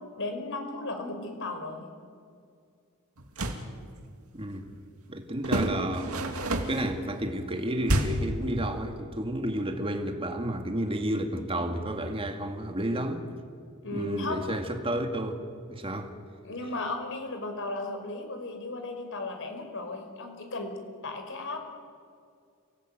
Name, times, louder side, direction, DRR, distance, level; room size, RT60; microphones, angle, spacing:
voice 1, 0.2-1.9 13.8-14.4 16.4-20.7 21.0-21.6, left 2 dB, 60° left, 5.0 m, -35 dB
sound 1, 3.2-3.7 5.4-6.9 7.8-8.4, right 1 dB, 70° right, 2.6 m, -28 dB
voice 2, 4.3-4.7 5.1-6.1 6.7-13.2 13.9-15.4 15.7-16.1, right 1 dB, 25° right, 2.2 m, -31 dB
29.5 x 19.0 x 9.1 m
head